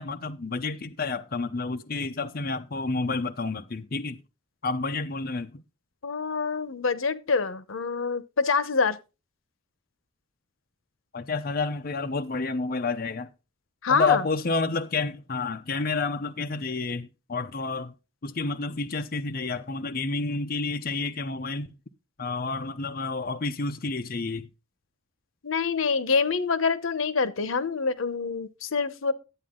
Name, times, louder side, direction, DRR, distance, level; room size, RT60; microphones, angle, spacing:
voice 1, 0.0-4.2 4.6-5.6 11.1-13.3 13.9-17.9 18.2-21.8 22.2-24.5, left 3 dB, 50° left, 0.7 m, -29 dB
voice 2, 6.0-9.0 13.8-14.2 25.4-29.1, left 5 dB, 90° left, 0.9 m, -26 dB
12.0 x 8.6 x 3.8 m
head